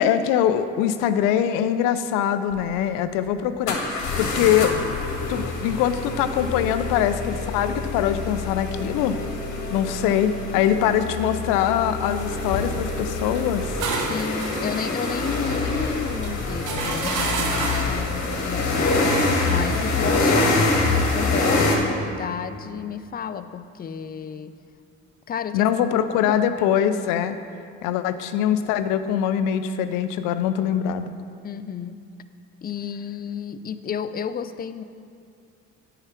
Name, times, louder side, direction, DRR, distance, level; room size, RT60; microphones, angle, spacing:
voice 1, 0.0-3.8 4.2-4.7 5.3-9.2 9.7-13.7 25.5-27.4 27.8-31.1, left 9 dB, 90° left, 11 dB, 0.5 m, -23 dB
sound 1, 2.5-2.6 3.7-21.8, left 3 dB, 60° left, 1.6 m, -25 dB
sound 2, 13.3-18.0, right 4 dB, 75° right, 1.0 m, -31 dB
voice 2, 14.1-19.0 19.4-24.6 25.3-25.7 26.1-26.7 31.4-32.0 32.6-34.8, left 7 dB, 30° left, 12 dB, 0.4 m, -32 dB
8.8 x 4.8 x 5.9 m, 2.4 s
supercardioid pair, 75°, 32 cm